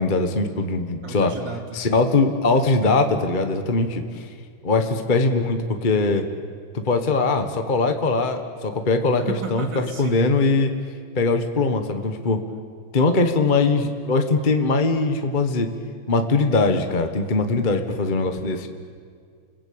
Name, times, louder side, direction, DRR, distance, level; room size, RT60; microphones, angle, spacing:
voice 1, 0.0-1.3 1.7-4.3 4.6-6.3 6.7-9.7 10.0-10.7 11.1-12.4 12.9-15.7 16.1-18.7, left 3 dB, 25° left, 6 dB, 1.3 m, -21 dB
voice 2, 1.0-1.8 9.1-10.2, right 5 dB, 55° right, 4 dB, 3.4 m, -33 dB
29.5 x 22.5 x 8.8 m, 2.1 s
omnidirectional pair, 2.4 m